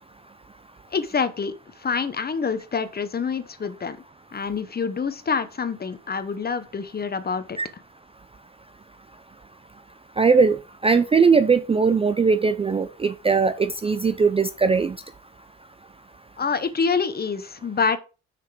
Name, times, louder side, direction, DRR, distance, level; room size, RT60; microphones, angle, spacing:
voice 1, 0.9-4.0 4.3-7.6 16.4-18.0, left 5 dB, 30° left, 12 dB, 1.0 m, -26 dB
voice 2, 10.2-10.6 10.8-15.0, right 5 dB, 20° right, 11 dB, 0.4 m, -19 dB
6.3 x 6.0 x 4.7 m, 0.33 s
cardioid pair, 90°, 30 cm